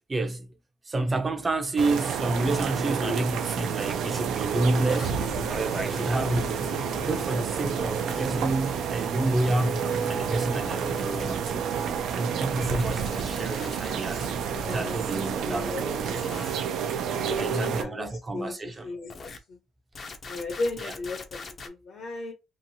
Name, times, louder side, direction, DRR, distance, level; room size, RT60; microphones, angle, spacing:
voice 1, 0.1-0.5 0.9-6.7 7.1-11.6 12.2-14.3 14.7-16.2 17.4-18.9 20.8-20.9, right 2 dB, 20° right, 0.5 m, -29 dB
sound 1, 1.8-17.8, right 7 dB, 85° right, 0.4 m, -30 dB
sound 2, 4.8-8.5 9.4-12.1 12.4-16.7 19.1-19.4 19.9-21.7, left 3 dB, 40° left, 0.5 m, -40 dB
voice 2, 14.5-16.3 17.1-19.1 19.5-19.6 20.2-22.3, left 3 dB, 65° left, 0.8 m, -36 dB
2.9 x 2.4 x 2.7 m
cardioid pair, 140°, 0 cm